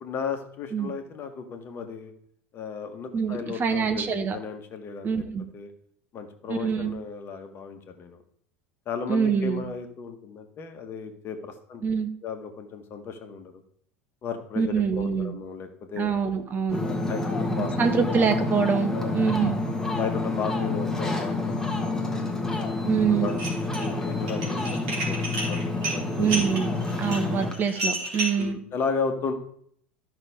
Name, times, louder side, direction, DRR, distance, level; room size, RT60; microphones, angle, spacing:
voice 1, 0.0-2.1 2.5-5.2 5.5-5.7 6.1-8.2 8.8-11.8 12.2-13.5 14.2-16.2 16.8-17.9 18.9-19.2 20.0-23.4 23.7-24.8 25.1-26.3 28.4-29.3, left 5 dB, 35° left, 6 dB, 1.6 m, -35 dB
voice 2, 3.1-4.4 5.0-5.5 6.5-6.9 9.1-9.6 11.8-12.1 14.6-15.3 16.0-16.8 17.6-19.6 22.8-23.3 26.2-26.7 27.0-28.6, right 6 dB, 30° right, 7 dB, 1.5 m, -25 dB
Ocean, 16.7-27.5, left 2 dB, 5° left, 1.7 m, -28 dB
Dishes pots and pans, 23.3-23.9 24.2-28.4, right 2 dB, 55° right, 3.4 m, -31 dB
13.5 x 6.0 x 3.7 m, 0.64 s
figure-of-eight pair, 75°, 7 cm